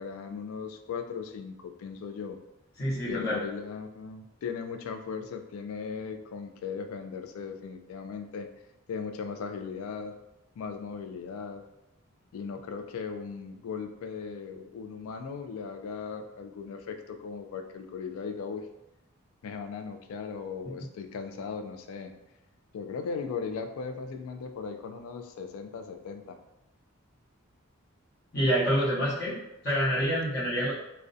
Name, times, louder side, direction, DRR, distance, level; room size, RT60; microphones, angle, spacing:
voice 1, 0.0-2.4 3.1-8.5 8.9-10.1 10.6-11.6 12.3-18.6 19.4-22.1 22.7-26.4, left 5 dB, 85° left, 6 dB, 0.3 m, -38 dB
voice 2, 2.8-3.4 20.6-20.7 28.3-30.7, equal, 50° left, -9 dB, 0.8 m, -27 dB
2.4 x 2.1 x 2.5 m, 0.90 s
head